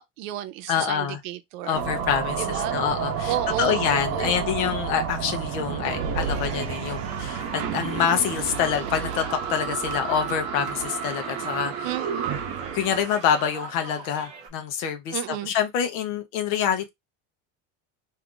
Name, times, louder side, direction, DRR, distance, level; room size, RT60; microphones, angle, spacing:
voice 1, 0.0-1.8 2.4-2.8 3.3-3.8 4.1-4.5 11.8-12.5 15.1-15.5, right 12 dB, 80° right, 0.6 m, -32 dB
voice 2, 0.7-1.2 1.6-9.2 9.5-11.9 12.7-16.9, left 8 dB, 90° left, 0.8 m, -26 dB
sound 1, 1.8-13.7, right 7 dB, 45° right, 0.7 m, -30 dB
sound 2, 5.9-14.5, right 5 dB, 20° right, 0.3 m, -42 dB
2.7 x 2.4 x 3.6 m
cardioid pair, 175°, 39 cm